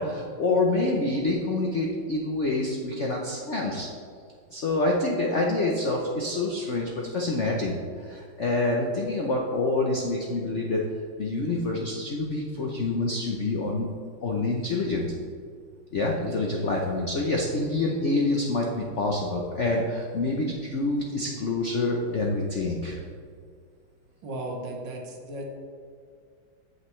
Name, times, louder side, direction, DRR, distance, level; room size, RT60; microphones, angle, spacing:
voice 1, 0.0-3.9 4.5-10.8 11.2-13.9 14.2-15.0 15.9-23.0, left 2 dB, 65° left, -1 dB, 0.7 m, -27 dB
voice 2, 24.2-25.5, right 1 dB, 65° right, 1 dB, 1.7 m, -35 dB
8.7 x 7.8 x 3.1 m, 2.1 s
omnidirectional pair, 2.2 m